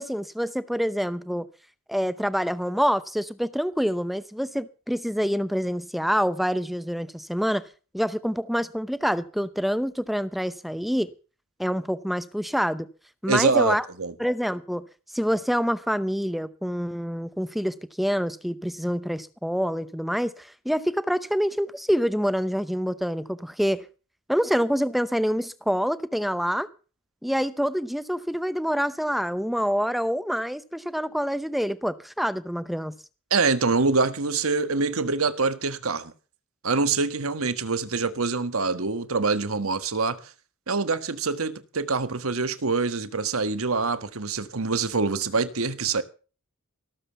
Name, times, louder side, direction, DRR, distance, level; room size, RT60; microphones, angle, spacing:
voice 1, 0.0-1.5 1.9-7.7 7.9-11.1 11.6-12.9 13.2-13.9 14.2-14.9 15.1-23.8 24.3-26.7 27.2-32.9, equal, ahead, 0.7 m, -26 dB
voice 2, 13.3-14.1 33.3-36.1 36.6-40.2 40.7-46.0, right 4 dB, 80° right, 1.5 m, -25 dB
18.0 x 7.6 x 6.9 m
head